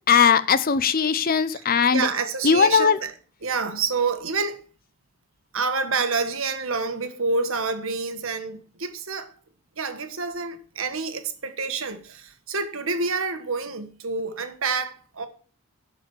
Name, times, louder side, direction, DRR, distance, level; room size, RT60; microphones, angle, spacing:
voice 1, 0.1-2.1 2.4-3.0, left 6 dB, 40° left, 0.6 m, -19 dB
voice 2, 1.9-3.1 3.4-4.6 5.5-9.3 9.8-15.3, right 4 dB, 65° right, 1.5 m, -28 dB
11.5 x 5.0 x 7.1 m
head